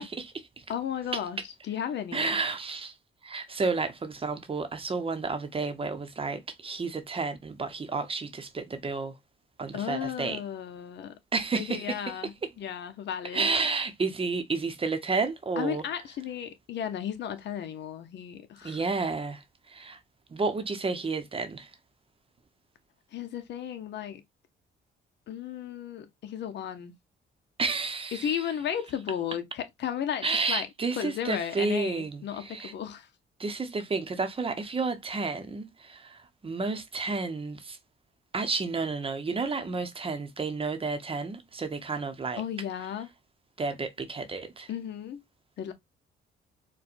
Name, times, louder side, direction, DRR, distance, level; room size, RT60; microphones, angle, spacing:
voice 1, 0.0-0.6 2.1-3.0 3.2-9.2 9.6-10.4 11.3-12.2 13.3-15.8 18.6-20.0 20.3-21.7 27.6-28.5 30.2-32.7 33.4-37.8 38.3-42.4 43.6-44.7, right 4 dB, 30° right, 0.8 m, -31 dB
voice 2, 0.7-1.4 1.6-2.4 9.7-11.2 11.6-13.5 15.6-18.8 23.1-24.2 25.3-26.9 28.1-30.7 31.0-33.1 42.4-43.1 44.7-45.2 45.6-45.7, left 9 dB, 60° left, 0.7 m, -34 dB
4.4 x 2.2 x 2.4 m
cardioid pair, 90°, 20 cm